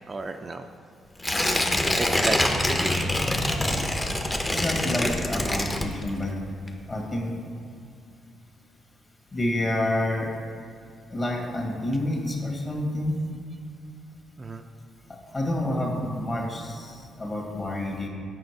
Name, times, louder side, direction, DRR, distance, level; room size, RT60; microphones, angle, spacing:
voice 1, 0.1-0.7 2.0-3.2 14.4-14.6, right 3 dB, 30° right, 6 dB, 0.4 m, -32 dB
Tearing, 1.2-6.3 6.7-6.8, left 1 dB, 20° left, 0.8 m, -25 dB
voice 2, 4.5-6.3 6.9-7.3 9.3-10.3 11.1-13.2 15.3-18.1, left 1 dB, 35° left, 0 dB, 1.8 m, -28 dB
7.6 x 5.7 x 4.6 m, 2.4 s
cardioid pair, 90°, 0 cm